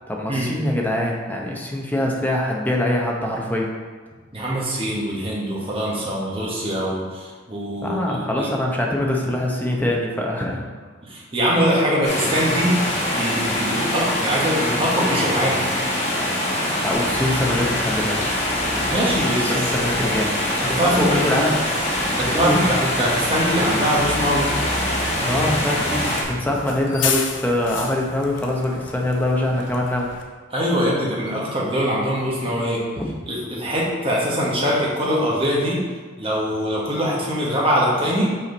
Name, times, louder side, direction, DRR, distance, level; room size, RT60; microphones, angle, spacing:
voice 1, 0.1-3.7 7.8-10.6 16.8-18.2 19.4-20.3 20.8-21.5 22.3-22.6 25.2-30.1 33.0-33.1, left 1 dB, 10° left, -1 dB, 0.8 m, -23 dB
voice 2, 4.3-8.5 11.1-12.7 13.1-15.7 18.9-19.8 20.6-21.3 22.2-24.5 30.5-32.8 33.3-35.8 36.2-38.3, equal, 30° right, -5 dB, 1.5 m, -22 dB
sound 1, 12.0-26.2, left 1 dB, 35° left, 1.4 m, -24 dB
Bus, 16.9-30.2, left 3 dB, 75° left, 0.8 m, -33 dB
5.7 x 5.0 x 4.0 m, 1.4 s
head